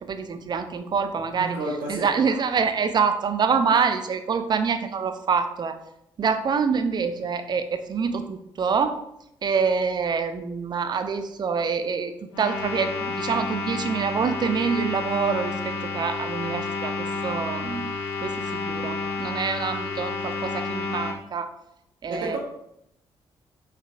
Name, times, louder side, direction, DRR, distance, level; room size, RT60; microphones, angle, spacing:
voice 1, 0.0-1.6 1.9-5.8 6.2-9.0 9.4-12.1 12.4-17.9 18.2-21.5 22.0-22.4, right 5 dB, 35° right, 9 dB, 0.4 m, -26 dB
voice 2, 1.4-2.1 22.1-22.4, right 2 dB, 65° right, -3 dB, 0.7 m, -30 dB
sound 1, 12.3-21.1, left 3 dB, 75° left, 0.5 m, -30 dB
3.9 x 3.8 x 2.5 m, 0.79 s
figure-of-eight pair, 40°, 13 cm